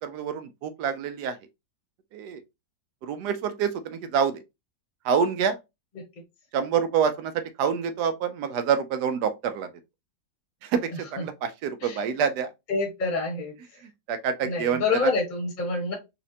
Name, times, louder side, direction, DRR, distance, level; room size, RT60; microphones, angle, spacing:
voice 1, 0.0-1.4 2.1-2.4 3.0-4.4 5.0-5.6 6.5-9.7 10.6-12.5 13.8-15.1, right 7 dB, 75° right, 1.1 m, -27 dB
voice 2, 12.7-13.5 14.4-15.9, left 3 dB, 30° left, 1.1 m, -27 dB
4.2 x 2.5 x 2.7 m
omnidirectional pair, 1.9 m